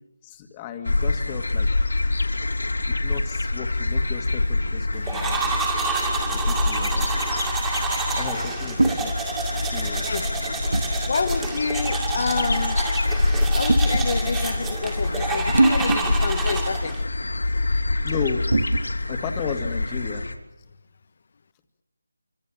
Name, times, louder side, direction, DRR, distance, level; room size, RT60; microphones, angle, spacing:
voice 1, 0.2-2.2 3.0-5.5 6.3-7.1 8.2-9.2 9.7-10.1 18.0-18.5 19.1-20.3, left 7 dB, 15° left, 6 dB, 1.9 m, -34 dB
sound 1, 0.8-20.3, left 2 dB, 85° left, 3.6 m, -26 dB
sound 2, 5.1-17.0, right 4 dB, 10° right, 2.4 m, -29 dB
sound 3, 6.8-7.1 8.8-9.1 10.7-10.9 12.0-12.2 13.7-14.1 15.5-16.4 16.7-16.8 18.5-19.1, right 2 dB, 90° right, 2.1 m, -22 dB
voice 2, 11.1-12.8 13.5-17.0, left 4 dB, 45° left, 13 dB, 1.4 m, -28 dB
25.5 x 25.5 x 7.4 m, 0.97 s
figure-of-eight pair, 165°, 0 cm